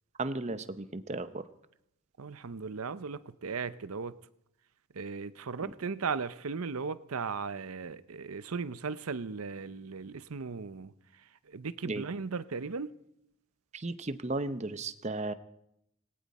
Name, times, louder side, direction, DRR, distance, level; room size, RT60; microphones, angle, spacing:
voice 1, 0.2-1.5 5.6-5.7 11.8-12.0 13.7-15.3, right 2 dB, 30° right, 0.7 m, -35 dB
voice 2, 2.2-4.1 4.9-10.9 11.5-12.9, right 5 dB, 85° right, 0.7 m, -37 dB
19.0 x 18.5 x 4.2 m
head